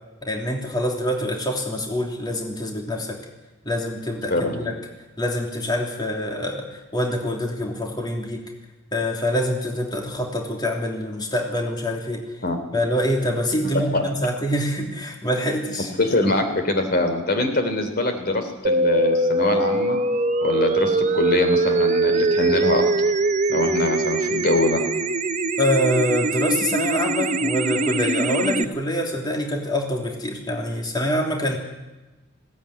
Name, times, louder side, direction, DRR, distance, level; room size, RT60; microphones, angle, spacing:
voice 1, 0.2-3.2 3.6-4.8 5.2-8.4 8.9-12.4 12.7-15.9 25.6-31.6, left 1 dB, 20° left, 1 dB, 3.1 m, -25 dB
voice 2, 4.3-4.7 12.4-12.6 13.9-14.3 16.0-20.0 20.4-22.8 23.5-24.8, left 2 dB, 55° left, 6 dB, 3.3 m, -23 dB
sound 1, 18.6-28.6, right 2 dB, 40° right, 0.9 m, -22 dB
20.5 x 17.5 x 9.8 m, 1.1 s
head